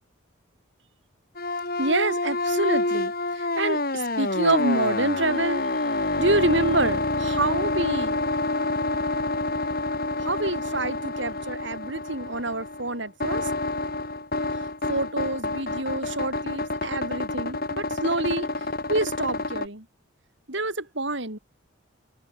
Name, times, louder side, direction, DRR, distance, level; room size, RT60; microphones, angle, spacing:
sound 1, 1.4-19.7, left 2 dB, 45° left, 4.0 m, -28 dB
voice 1, 1.8-5.7 6.2-8.2 10.2-13.5 14.6-18.5 18.9-19.9 20.5-21.4, right 2 dB, 60° right, 5.9 m, -27 dB
open air
head